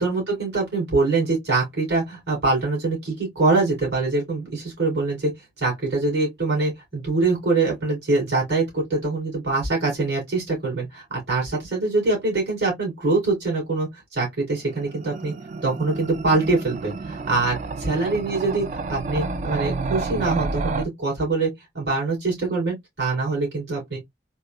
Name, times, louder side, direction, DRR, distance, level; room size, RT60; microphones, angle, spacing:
voice 1, 0.0-5.3 5.6-15.3 15.6-24.0, right 3 dB, 60° right, 2.7 m, -24 dB
sound 1, 14.6-20.9, right 3 dB, 40° right, 0.3 m, -30 dB
4.0 x 2.3 x 2.2 m
head